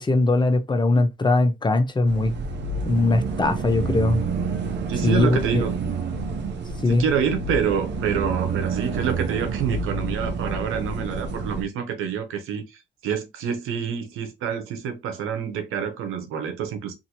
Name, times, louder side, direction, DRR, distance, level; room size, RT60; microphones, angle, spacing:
voice 1, 0.0-2.3 2.9-4.2 5.0-5.6 6.8-7.0, left 2 dB, 20° left, 0.6 m, -20 dB
sound 1, 2.1-11.6, right 4 dB, 60° right, 0.7 m, -29 dB
voice 2, 4.9-5.7 6.9-16.9, right 7 dB, 85° right, 0.8 m, -27 dB
2.7 x 2.6 x 2.9 m
cardioid pair, 80°, 21 cm